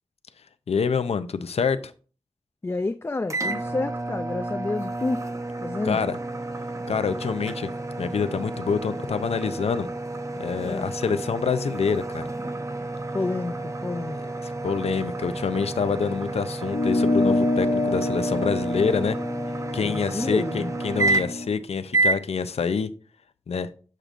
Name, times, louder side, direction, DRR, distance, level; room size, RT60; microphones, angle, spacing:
voice 1, 0.7-1.9 5.8-6.2 6.9-7.7 8.0-9.9 10.4-12.2 14.4-19.2 19.7-22.9 23.5-23.7, left 5 dB, 85° left, 0.5 m, -26 dB
voice 2, 2.6-5.2 5.6-6.0 10.6-10.9 13.1-14.2 19.8-20.7, left 2 dB, 25° left, 0.3 m, -29 dB
sound 1, 3.3-21.5 21.9-22.2, right 2 dB, 30° right, 0.7 m, -30 dB
sound 2, 16.7-21.5, left 2 dB, 65° left, 1.2 m, -26 dB
7.4 x 6.6 x 2.5 m
wide cardioid pair, 85°, 10 cm